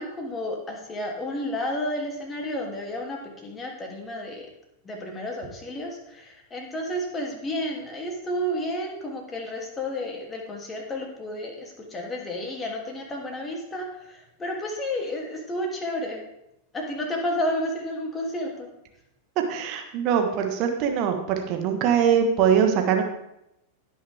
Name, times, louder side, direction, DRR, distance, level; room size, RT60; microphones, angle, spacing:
voice 1, 0.0-4.5 4.8-16.2 16.7-18.7, left 1 dB, 20° left, 0 dB, 2.8 m, -31 dB
voice 2, 19.5-23.0, right 7 dB, 40° right, 4 dB, 1.4 m, -22 dB
17.0 x 6.3 x 3.5 m, 0.84 s
figure-of-eight pair, 90°, 0 cm